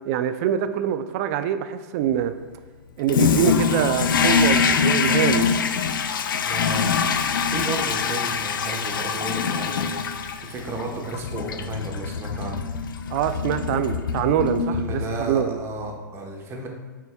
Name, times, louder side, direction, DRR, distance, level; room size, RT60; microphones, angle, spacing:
voice 1, 0.1-2.3 3.0-5.5 13.1-15.0 15.3-15.6, right 10 dB, 45° right, 10 dB, 0.4 m, -24 dB
Toilet flush, 3.1-15.4, left 6 dB, 75° left, 0.4 m, -24 dB
voice 2, 6.5-6.9 7.5-10.0 10.4-12.6 14.7-16.7, right 2 dB, 25° right, 0 dB, 1.1 m, -32 dB
9.2 x 4.5 x 2.3 m, 1.3 s
hypercardioid pair, 125°, 11 cm